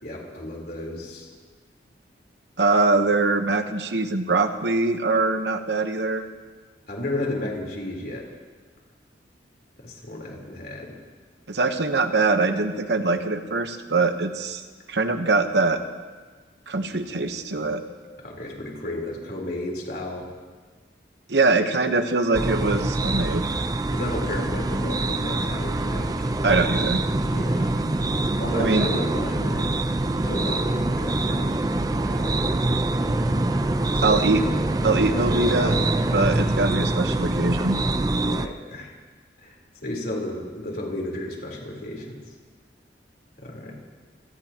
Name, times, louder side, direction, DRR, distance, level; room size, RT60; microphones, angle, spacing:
voice 1, 0.0-1.3 6.9-8.3 9.8-11.0 18.2-20.3 23.9-26.3 27.3-27.7 28.4-29.7 30.2-31.6 32.0-32.4 33.9-34.1 38.2-38.9 39.4-39.5 39.8-42.2 43.4-43.7, left 1 dB, 55° left, -1 dB, 3.8 m, -33 dB
voice 2, 2.6-6.2 11.5-14.6 14.9-15.8 16.7-17.8 21.3-23.5 26.4-27.0 28.6-28.9 34.0-34.4 34.8-37.8, right 3 dB, 70° right, 7 dB, 1.1 m, -23 dB
sound 1, 22.3-38.5, right 2 dB, 20° right, 0.5 m, -24 dB
27.5 x 17.5 x 3.0 m, 1.4 s
head